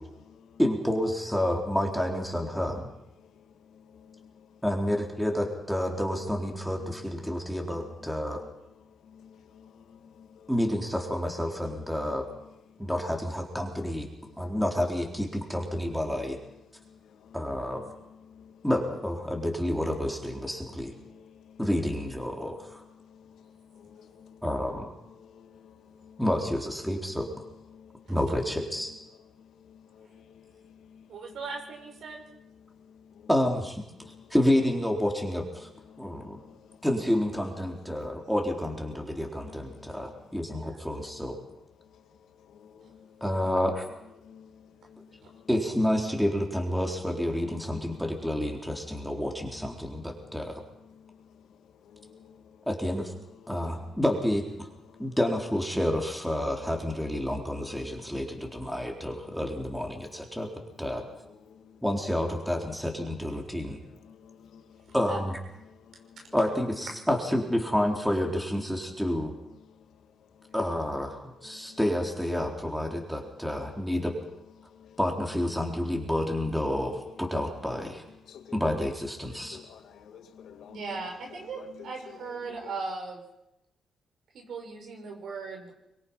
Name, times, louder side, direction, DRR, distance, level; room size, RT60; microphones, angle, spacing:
voice 1, 0.0-0.6 2.5-2.8 3.1-4.6 5.9-6.0 6.5-10.6 11.5-12.9 14.2-14.6 15.3-18.7 19.3-19.4 19.7-19.8 20.3-21.7 22.4-26.2 26.8-28.2 28.9-31.4 32.3-33.3 34.0-34.3 35.6-36.9 37.6-38.3 38.9-43.5 44.2-45.5 47.4-52.9 53.1-54.0 54.7-55.2 56.6-56.8 57.2-59.7 60.1-60.5 60.8-61.8 62.5-64.9 65.6-66.3 68.7-69.2 69.5-70.6 71.1-71.8 72.5-74.0 74.6-75.0 75.6-76.0 76.6-76.7 77.1-77.2 78.2-79.0 79.3-82.7, left 7 dB, 75° left, 6 dB, 2.1 m, -54 dB
voice 2, 0.6-2.9 4.6-8.4 10.5-12.2 12.8-14.1 14.4-16.4 17.3-17.8 18.6-20.9 21.6-22.8 24.4-24.9 26.2-27.3 28.1-28.9 33.3-33.8 34.3-35.7 36.0-36.4 36.8-41.4 43.2-43.8 45.5-50.5 52.7-53.1 53.5-54.4 55.0-60.5 60.8-61.0 61.8-63.8 64.9-65.4 66.3-69.3 70.5-74.1 75.0-78.0 78.5-79.6, left 1 dB, ahead, 0 dB, 4.1 m, -29 dB
voice 3, 31.1-32.2 40.5-40.7 65.1-65.2 80.7-83.2 84.3-85.7, right 4 dB, 75° right, 2 dB, 6.0 m, -38 dB
24.0 x 22.5 x 5.7 m, 0.89 s
cardioid pair, 70°, 0 cm